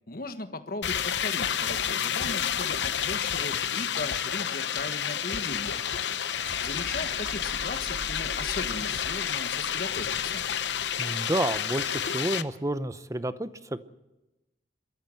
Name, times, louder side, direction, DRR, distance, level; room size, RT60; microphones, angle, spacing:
voice 1, 0.1-5.8 6.6-10.4, left 3 dB, 50° left, 8 dB, 1.5 m, -37 dB
sound 1, 0.8-12.4, left 8 dB, 70° left, 0.8 m, -30 dB
sound 2, 4.8-11.2, right 1 dB, 85° right, 4.1 m, -45 dB
voice 2, 11.0-13.8, right 1 dB, 15° right, 13 dB, 0.7 m, -30 dB
25.5 x 13.5 x 7.8 m, 1.0 s
head